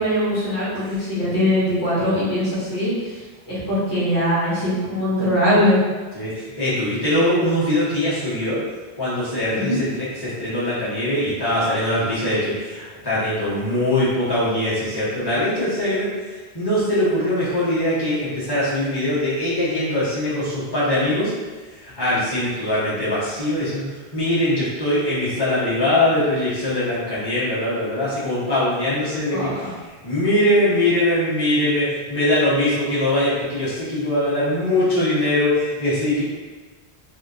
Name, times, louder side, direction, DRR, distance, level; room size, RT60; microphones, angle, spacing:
voice 1, 0.0-3.2 3.5-5.8 9.5-9.8 29.3-29.6, equal, 80° left, -10 dB, 1.5 m, -21 dB
voice 2, 6.1-8.6 8.9-16.1 16.5-21.3 21.7-23.8 24.1-29.7 30.0-36.2, left 1 dB, 25° left, -11 dB, 1.2 m, -22 dB
3.5 x 2.5 x 2.7 m, 1.3 s
omnidirectional pair, 1.1 m